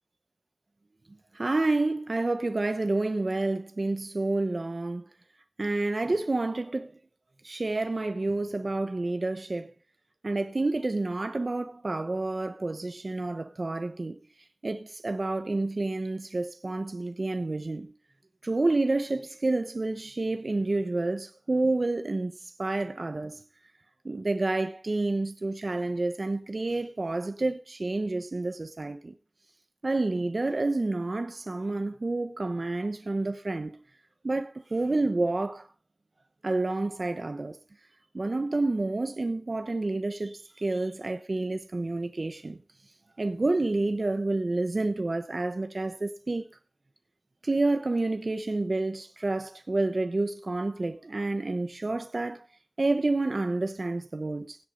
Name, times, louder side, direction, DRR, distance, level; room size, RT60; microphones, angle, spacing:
voice 1, 1.3-5.0 5.6-6.9 7.4-9.7 10.2-14.2 14.6-17.9 18.4-23.4 24.0-29.1 29.8-33.8 34.2-35.7 36.4-37.6 38.1-42.6 43.2-46.5 47.4-52.4 52.8-54.6, right 2 dB, 75° right, 1.0 m, -29 dB
16.5 x 8.3 x 5.3 m
wide cardioid pair, 40°, 0 cm